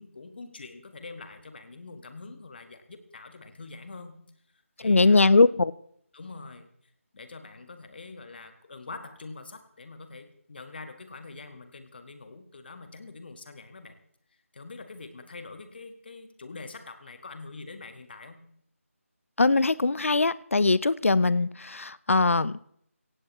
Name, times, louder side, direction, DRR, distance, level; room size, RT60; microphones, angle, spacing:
voice 1, 0.0-4.2 4.8-5.4 6.1-6.7 7.1-13.9 14.5-18.4, left 3 dB, 45° left, 8 dB, 1.6 m, -44 dB
voice 2, 4.8-5.7 19.4-22.7, left 3 dB, 65° left, 20 dB, 0.6 m, -21 dB
16.5 x 16.5 x 3.2 m, 0.67 s
figure-of-eight pair, 160°, 8 cm